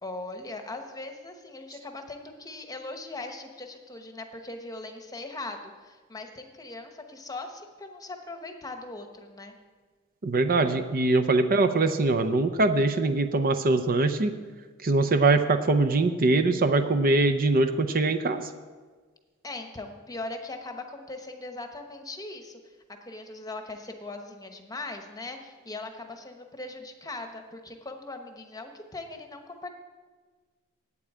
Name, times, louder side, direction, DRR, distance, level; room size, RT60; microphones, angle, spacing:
voice 1, 0.0-9.5 19.4-22.7 23.0-29.7, left 2 dB, 15° left, 5 dB, 1.0 m, -40 dB
voice 2, 10.2-14.3 14.8-18.5, right 2 dB, 45° right, 9 dB, 0.6 m, -23 dB
8.6 x 8.4 x 8.4 m, 1.4 s
head